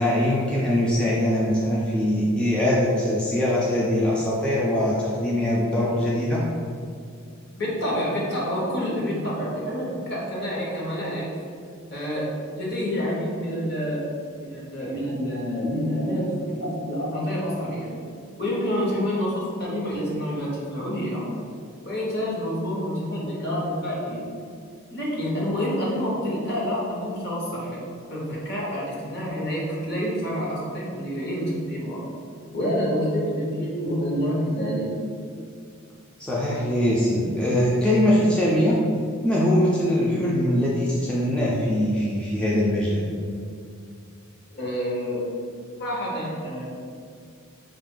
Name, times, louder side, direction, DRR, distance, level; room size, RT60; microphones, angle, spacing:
voice 1, 0.0-6.4 36.2-38.8 39.2-43.0, left 1 dB, 5° left, -6 dB, 0.3 m, -22 dB
voice 2, 7.6-11.3 11.9-12.3 12.5-14.0 14.4-17.9 18.4-21.2 21.8-24.3 24.9-27.8 28.1-32.0 32.5-34.9 44.5-45.2 45.8-46.7, equal, 50° left, -5 dB, 1.0 m, -28 dB
3.9 x 2.4 x 3.7 m, 2.3 s
head